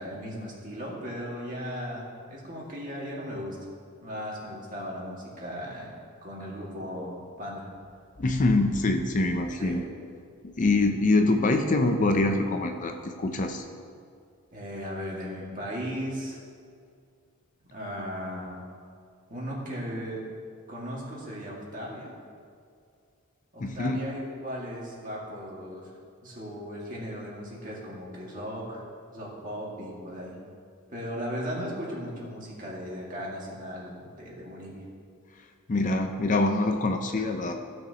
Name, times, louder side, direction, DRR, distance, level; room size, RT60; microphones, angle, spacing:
voice 1, 0.0-3.6 4.0-5.9 6.2-7.6 9.6-9.8 14.5-16.4 17.7-18.6 19.3-20.2 20.7-22.1 23.5-25.9 26.2-28.8 29.1-30.4 30.9-34.9, equal, 35° right, -4 dB, 1.9 m, -37 dB
voice 2, 8.2-9.8 10.4-13.6 23.6-24.0 35.7-37.5, left 2 dB, 35° left, 5 dB, 0.5 m, -24 dB
15.5 x 6.3 x 2.9 m, 2.3 s
head